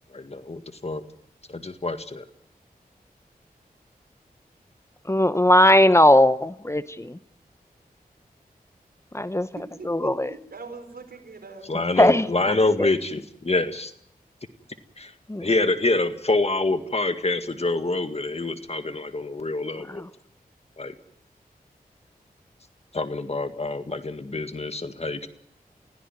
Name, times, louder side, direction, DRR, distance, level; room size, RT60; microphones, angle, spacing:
voice 1, 0.1-1.0 1.5-2.2 11.7-13.9 15.0-15.1 15.4-20.0 20.8-20.9 22.9-25.3, left 2 dB, 40° left, 9 dB, 1.9 m, -26 dB
voice 2, 5.1-7.2 9.1-10.4 12.0-12.9 15.3-15.5 19.9-20.1, left 1 dB, 15° left, 13 dB, 0.9 m, -19 dB
voice 3, 9.5-11.6, right 4 dB, 80° right, 5 dB, 4.9 m, -42 dB
29.5 x 16.5 x 9.1 m, 0.71 s
wide cardioid pair, 60°, 16 cm